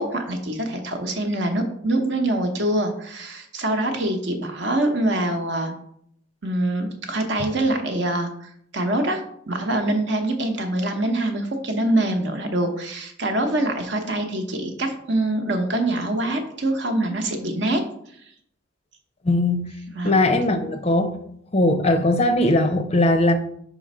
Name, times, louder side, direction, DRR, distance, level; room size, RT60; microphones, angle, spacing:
voice 1, 0.0-5.7 6.4-17.8 20.0-20.2, right 1 dB, 55° right, 5 dB, 0.9 m, -24 dB
voice 2, 19.2-19.7 20.0-21.2 21.5-23.3, left 1 dB, 30° left, 7 dB, 0.5 m, -19 dB
5.1 x 3.8 x 5.4 m, 0.68 s
head